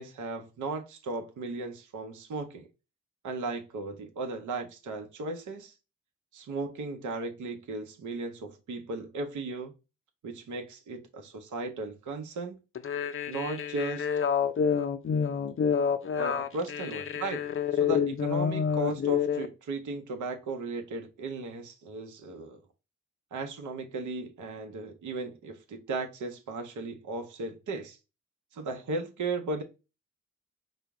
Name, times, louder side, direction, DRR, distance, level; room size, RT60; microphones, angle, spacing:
voice 1, 0.0-2.7 3.2-5.7 6.3-9.7 10.2-12.6 13.3-14.1 16.2-22.6 23.3-28.0 28.5-29.6, right 3 dB, 65° right, 0.8 m, -36 dB
sound 1, 12.8-19.5, left 7 dB, 40° left, 0.6 m, -28 dB
4.8 x 2.0 x 4.6 m
supercardioid pair, 45°, 32 cm